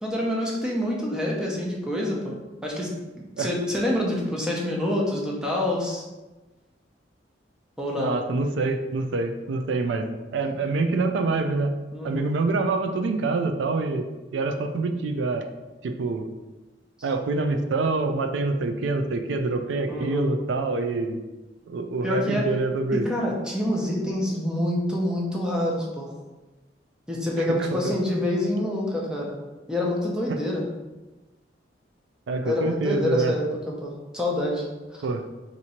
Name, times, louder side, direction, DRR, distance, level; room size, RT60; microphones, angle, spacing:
voice 1, 0.0-2.4 2.6-2.9 3.1-6.0 7.8-8.1 11.9-12.3 17.0-17.1 19.9-20.3 22.0-22.5 22.9-26.1 27.1-29.3 29.7-30.6 32.4-34.6 34.9-35.1, left 1 dB, 5° right, -3 dB, 0.6 m, -27 dB
voice 2, 7.9-11.7 12.0-14.1 14.3-15.4 15.8-16.3 17.0-21.2 21.7-23.1 27.4-28.0 30.3-30.4 32.3-33.4 35.0-35.3, right 3 dB, 80° right, 7 dB, 0.4 m, -26 dB
2.9 x 2.6 x 4.2 m, 1.1 s
head